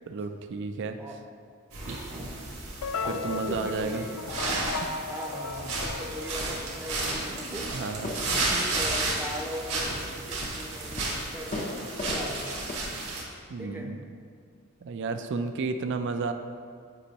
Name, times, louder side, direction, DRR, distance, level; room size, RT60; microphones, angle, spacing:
voice 1, 0.1-1.0 1.9-2.0 3.1-4.0 7.7-8.1 13.5-14.0 14.8-16.3, right 4 dB, 55° right, 8 dB, 0.4 m, -32 dB
sound 1, 1.7-13.2, right 2 dB, 85° right, 1.6 m, -33 dB
voice 2, 2.0-2.4 3.0-4.2 5.0-7.7 8.3-11.7 12.0-12.6 13.6-14.0, equal, 10° right, 0 dB, 0.6 m, -39 dB
sound 2, 2.8-7.1, left 4 dB, 80° left, 0.4 m, -36 dB
sound 3, 7.7-12.7, left 2 dB, 35° left, 0.6 m, -38 dB
8.2 x 5.3 x 2.8 m, 2.1 s
head